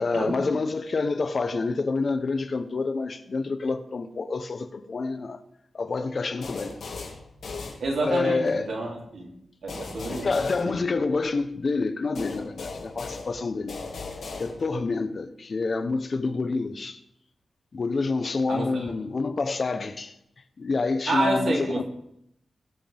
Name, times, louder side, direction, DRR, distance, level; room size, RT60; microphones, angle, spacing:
voice 1, 0.0-5.4 5.7-6.8 8.0-8.7 10.1-13.8 14.4-17.0 17.7-20.2 20.6-21.8, left 3 dB, 45° left, 0.9 m, -27 dB
sound 1, 6.4-8.3 9.7-11.4 12.2-14.9, left 4 dB, 85° left, 2.2 m, -38 dB
voice 2, 7.8-9.3 9.6-10.3 10.6-10.7 18.5-18.7 21.1-21.8, right 2 dB, 85° right, 3.0 m, -28 dB
20.5 x 7.7 x 3.5 m
wide cardioid pair, 145°, 0 cm